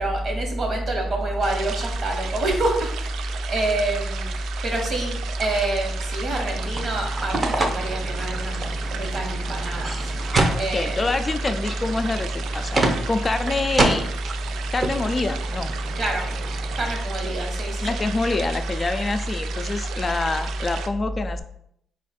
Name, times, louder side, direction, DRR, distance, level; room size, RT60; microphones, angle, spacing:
voice 1, 0.0-4.3 4.6-10.1 10.6-11.0 15.9-16.3 16.7-18.0, right 1 dB, 50° right, 1 dB, 1.3 m, -26 dB
sound 1, 1.4-20.9, right 7 dB, 80° right, 0.3 m, -36 dB
sound 2, 6.2-16.9, right 2 dB, 35° right, 0.8 m, -29 dB
voice 2, 10.4-14.1 14.7-15.7 17.8-21.4, left 3 dB, 30° left, 8 dB, 0.4 m, -26 dB
4.3 x 2.4 x 4.2 m, 0.71 s
cardioid pair, 85°, 0 cm